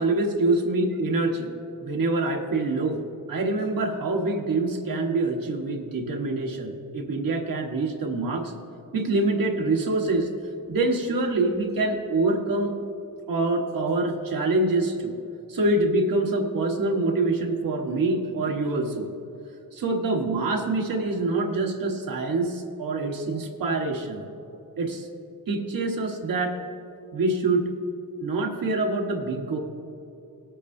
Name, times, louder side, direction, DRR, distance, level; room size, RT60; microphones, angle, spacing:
voice 1, 0.0-1.5 1.8-3.0 3.3-8.5 8.9-10.3 10.7-12.7 13.3-15.1 15.5-19.1 19.7-24.3 24.8-25.1 25.5-26.6 27.1-27.7 28.2-29.6, right 2 dB, 75° right, 2 dB, 1.3 m, -25 dB
18.5 x 8.3 x 2.7 m, 2.7 s
wide cardioid pair, 160°, 34 cm